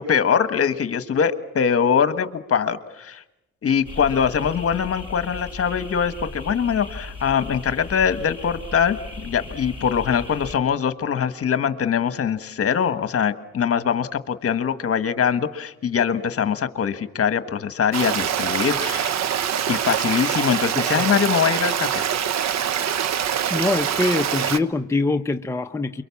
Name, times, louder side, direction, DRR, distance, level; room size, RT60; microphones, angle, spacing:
voice 1, 0.0-3.2 3.6-19.1 19.7-22.0, left 7 dB, 50° left, 11 dB, 1.6 m, -22 dB
sound 1, 3.8-10.6, left 2 dB, 15° right, 7.2 m, -37 dB
Stream, 17.9-24.6, right 9 dB, 60° right, 1.2 m, -24 dB
voice 2, 23.5-26.0, left 3 dB, 10° left, 5 dB, 0.9 m, -24 dB
28.5 x 23.5 x 7.2 m, 0.92 s
cardioid pair, 90°, 30 cm